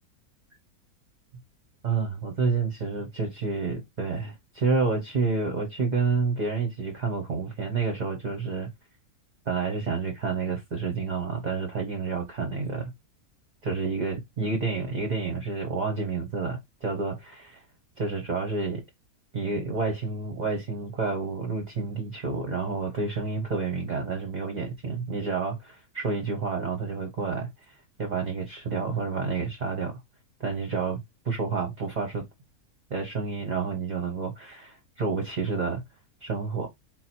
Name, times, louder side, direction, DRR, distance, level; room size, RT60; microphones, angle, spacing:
voice 1, 1.8-8.7 9.5-12.9 13.6-17.6 18.0-18.8 19.3-30.0 30.4-32.2 32.9-35.8 36.2-36.7, right 4 dB, 40° right, 0.7 m, -29 dB
4.0 x 2.1 x 4.1 m
omnidirectional pair, 1.6 m